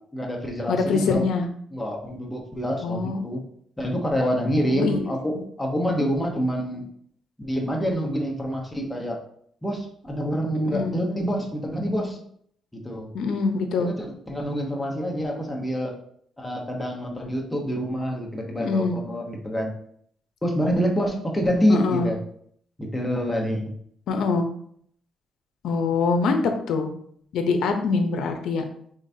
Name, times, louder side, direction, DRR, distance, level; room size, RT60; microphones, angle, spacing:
voice 1, 0.1-1.3 1.7-3.4 3.8-6.9 7.4-9.2 9.6-12.2 12.7-13.1 13.8-15.9 16.4-19.7 20.4-22.2 22.8-23.7, equal, 10° left, -1 dB, 0.9 m, -26 dB
voice 2, 0.7-1.5 2.8-3.2 4.7-5.4 10.6-10.9 13.1-13.9 18.6-18.9 21.7-22.1 24.1-24.5 25.6-26.9 27.3-28.6, left 4 dB, 75° left, 6 dB, 0.6 m, -24 dB
3.8 x 3.3 x 2.7 m, 0.64 s
cardioid pair, 90°, 0 cm